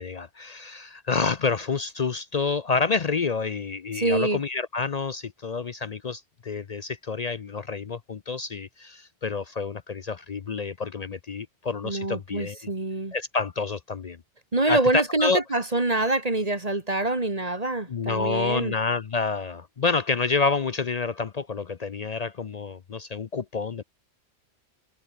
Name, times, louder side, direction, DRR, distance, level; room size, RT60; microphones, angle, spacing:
voice 1, 0.0-12.7 13.1-14.2 14.7-15.4 17.9-23.8, left 4 dB, 45° left, 0.5 m, -28 dB
voice 2, 3.9-4.4 11.8-13.1 14.5-18.7, right 2 dB, 30° right, 2.0 m, -25 dB
omnidirectional pair, 1.2 m